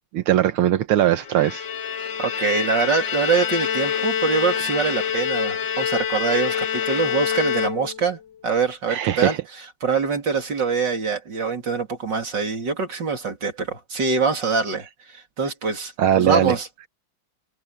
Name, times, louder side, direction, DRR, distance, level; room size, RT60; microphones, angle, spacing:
voice 1, 0.1-1.7 8.9-9.4 16.0-16.5, right 11 dB, 75° right, 1.8 m, -20 dB
Bowed string instrument, 1.2-8.2, left 8 dB, 60° left, 2.0 m, -26 dB
voice 2, 2.2-9.4 9.8-16.9, right 5 dB, 55° right, 3.5 m, -24 dB
omnidirectional pair, 2.3 m